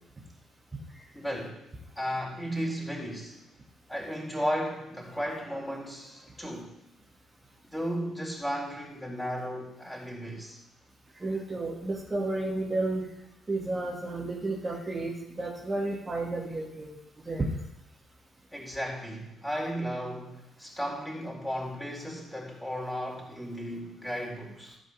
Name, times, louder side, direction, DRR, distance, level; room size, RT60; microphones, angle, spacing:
voice 1, 1.1-1.6 2.0-3.5 3.9-6.8 7.7-10.6 18.5-24.8, equal, 5° left, 4.2 m, -35 dB
voice 2, 11.2-13.1 13.5-17.0 17.2-17.5, right 2 dB, 25° right, 2.3 m, -32 dB
13.5 x 5.2 x 6.8 m
figure-of-eight pair, 45°, 0 cm